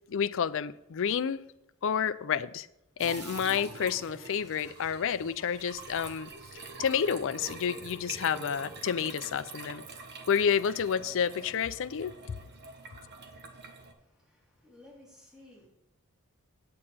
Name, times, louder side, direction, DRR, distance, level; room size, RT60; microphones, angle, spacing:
voice 1, 0.1-1.4 1.8-2.7 3.0-6.3 6.8-9.8 10.3-12.4, left 7 dB, 65° left, 0.4 m, -29 dB
sound 1, 3.0-13.9, right 3 dB, 50° right, 1.1 m, -45 dB
voice 2, 14.0-15.7, left 1 dB, 5° right, 2.9 m, -56 dB
8.6 x 8.6 x 4.2 m
head